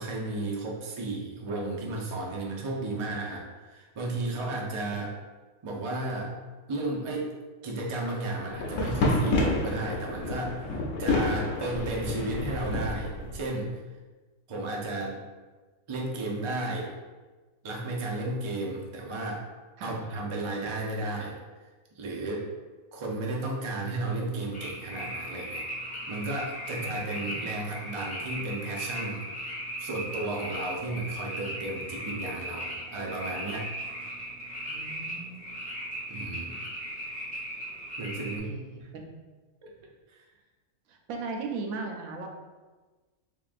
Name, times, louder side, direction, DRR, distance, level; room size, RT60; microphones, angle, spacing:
voice 1, 0.0-5.1 5.6-6.4 6.7-7.3 7.6-13.8 14.5-15.2 15.9-16.9 17.6-19.5 19.8-21.4 21.9-22.5 22.9-25.7 26.1-29.2 29.8-33.7 36.1-36.6 38.0-38.5 39.6-39.7 40.1-40.3, right 2 dB, 55° right, -1 dB, 0.3 m, -33 dB
sound 1, 8.5-13.4, left 2 dB, 70° left, 1.1 m, -29 dB
sound 2, 24.5-38.4, equal, 5° left, 0.8 m, -37 dB
voice 2, 26.7-27.5 34.7-35.5 38.4-39.0 40.9-42.3, right 3 dB, 90° right, 2 dB, 1.0 m, -38 dB
3.7 x 3.5 x 2.4 m, 1.3 s
omnidirectional pair, 1.4 m